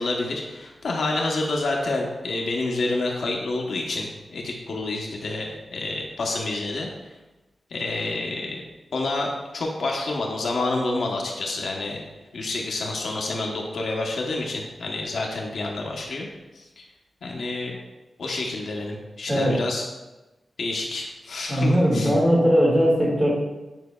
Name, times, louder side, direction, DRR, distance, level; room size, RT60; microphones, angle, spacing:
voice 1, 0.0-7.1 7.7-8.6 8.9-12.0 12.3-16.3 16.5-16.8 17.2-17.8 18.2-19.9 20.6-22.1, left 2 dB, 75° left, 0 dB, 1.0 m, -28 dB
voice 2, 19.3-19.6 21.5-23.3, equal, 10° right, -5 dB, 2.1 m, -19 dB
9.2 x 5.2 x 2.3 m, 1.1 s
wide cardioid pair, 145°, 0 cm